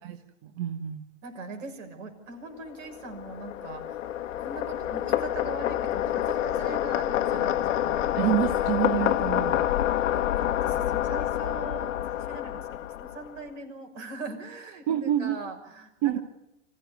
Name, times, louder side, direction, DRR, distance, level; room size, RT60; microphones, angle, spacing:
voice 1, 0.4-1.0 8.1-9.6 14.9-15.4 16.0-16.2, right 12 dB, 45° right, 6 dB, 1.6 m, -27 dB
voice 2, 1.2-4.0 4.4-8.1 10.1-12.6 13.0-16.2, right 3 dB, 80° right, 4 dB, 6.6 m, -41 dB
sound 1, 2.7-13.4, left 12 dB, 85° left, 1.3 m, -27 dB
26.0 x 15.5 x 9.4 m, 0.87 s
supercardioid pair, 145°, 37 cm